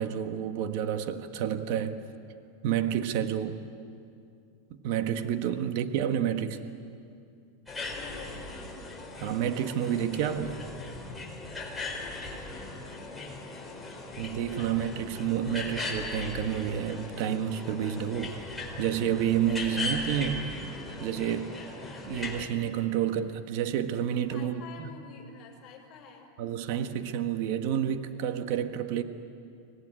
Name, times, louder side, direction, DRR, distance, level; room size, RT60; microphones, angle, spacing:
voice 1, 0.0-2.0 2.6-3.6 4.7-6.6 9.2-10.6 14.2-18.4 18.8-20.5 21.0-21.6 22.0-24.9 26.4-29.0, right 9 dB, 60° right, 8 dB, 1.6 m, -29 dB
sound 1, 7.7-22.4, left 2 dB, 5° left, 4.2 m, -38 dB
voice 2, 7.8-8.6 11.9-14.2 24.3-26.3, left 6 dB, 35° left, -1 dB, 6.5 m, -50 dB
25.0 x 18.0 x 10.0 m, 2.5 s
supercardioid pair, 125°, 0 cm